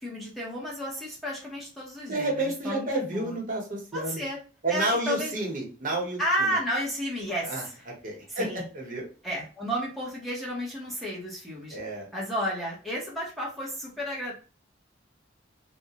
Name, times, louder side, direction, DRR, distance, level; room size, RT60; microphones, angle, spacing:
voice 1, 0.0-2.3 2.6-3.3 3.9-4.4 4.7-5.3 6.2-7.6 8.3-8.6 9.2-11.8 12.1-14.3, equal, ahead, -5 dB, 0.7 m, -32 dB
voice 2, 2.1-4.2 4.6-6.6 7.4-9.1 11.7-12.1, right 1 dB, 45° right, -1 dB, 0.8 m, -30 dB
2.4 x 2.1 x 2.8 m, 0.36 s
head